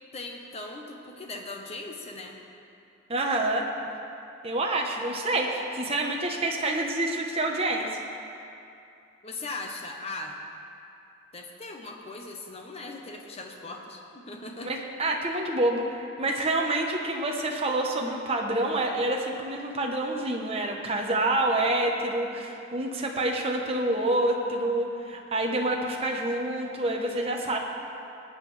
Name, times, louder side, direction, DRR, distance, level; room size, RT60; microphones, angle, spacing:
voice 1, 0.1-2.4 9.2-10.4 11.3-14.7, left 2 dB, 30° left, 2 dB, 1.0 m, -39 dB
voice 2, 3.1-3.7 4.4-8.0 14.6-27.6, right 2 dB, 30° right, 1 dB, 0.9 m, -27 dB
19.0 x 8.7 x 3.3 m, 2.7 s
head